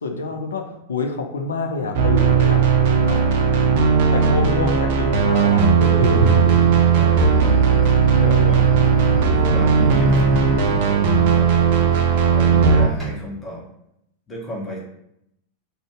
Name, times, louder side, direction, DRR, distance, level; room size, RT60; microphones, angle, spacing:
voice 1, 0.0-0.6 0.9-2.6 3.0-3.2 4.1-6.4 7.9-8.6, left 4 dB, 70° left, 4 dB, 0.4 m, -27 dB
sound 1, 1.9-12.9, right 6 dB, 50° right, 0.4 m, -17 dB
voice 2, 4.1-4.5 6.9-7.8 8.2-8.7 9.0-11.9 12.3-13.6 14.3-14.8, equal, 15° left, -4 dB, 0.8 m, -34 dB
Thunder, 5.9-13.1, right 3 dB, 5° right, 1.1 m, -28 dB
2.5 x 2.2 x 3.4 m, 0.78 s
figure-of-eight pair, 90°, 0 cm